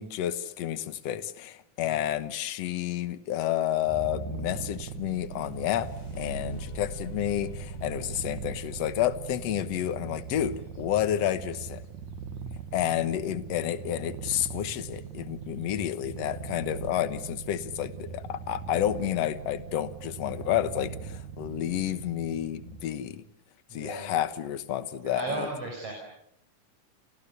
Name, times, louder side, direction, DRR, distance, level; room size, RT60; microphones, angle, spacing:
voice 1, 0.0-5.9 6.2-11.8 12.7-23.2 23.7-25.5, left 11 dB, 60° left, 12 dB, 2.1 m, -30 dB
Purr, 3.8-23.2, right 6 dB, 65° right, 2.9 m, -40 dB
sound 1, 4.9-12.8 14.8-15.0 15.4-16.0 16.6-16.7 17.2-17.5, left 1 dB, 35° left, 4.7 m, -47 dB
voice 2, 20.3-20.6 23.7-24.1 25.0-25.9, right 3 dB, 45° right, 1 dB, 6.5 m, -36 dB
29.0 x 28.0 x 7.0 m, 0.75 s
omnidirectional pair, 3.8 m